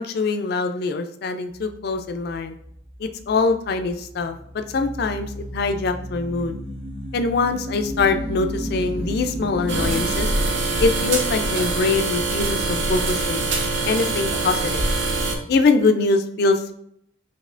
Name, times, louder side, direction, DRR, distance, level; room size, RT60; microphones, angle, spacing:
voice 1, 0.0-2.5 3.0-6.6 7.1-10.3 10.8-13.4 13.9-14.8 15.5-16.7, left 3 dB, 50° left, 7 dB, 0.3 m, -23 dB
sound 1, 1.6-15.7, equal, 30° right, 0.8 m, -35 dB
sound 2, 9.7-15.3, right 3 dB, 70° right, 0.7 m, -23 dB
5.3 x 2.7 x 2.5 m, 0.71 s
head